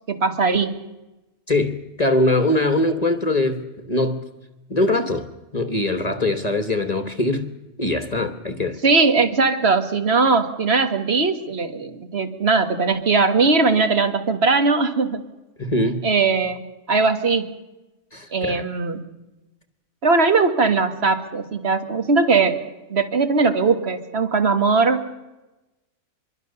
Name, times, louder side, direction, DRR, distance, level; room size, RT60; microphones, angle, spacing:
voice 1, 0.1-0.7 8.8-15.2 16.0-16.6 16.9-17.5 18.3-19.0 20.0-22.6 22.9-25.0, right 4 dB, 45° right, 8 dB, 1.8 m, -19 dB
voice 2, 1.5-4.2 4.7-5.3 5.5-7.5 7.8-8.8 15.6-16.0 18.1-18.6, left 2 dB, 30° left, 8 dB, 1.4 m, -22 dB
25.0 x 22.5 x 6.8 m, 1.0 s
omnidirectional pair, 1.6 m